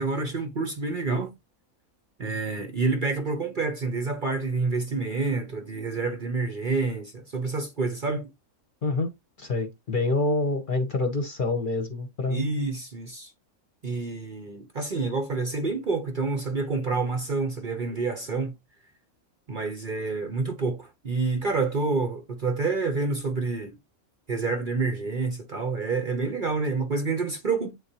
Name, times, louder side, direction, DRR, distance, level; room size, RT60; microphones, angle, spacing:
voice 1, 0.0-1.3 2.2-8.3 12.3-13.3 13.8-18.5 19.5-23.7 24.3-27.7, right 3 dB, 40° right, 0.9 m, -28 dB
voice 2, 9.4-12.4, left 2 dB, 40° left, 1.0 m, -26 dB
8.4 x 3.9 x 2.8 m
omnidirectional pair, 1.5 m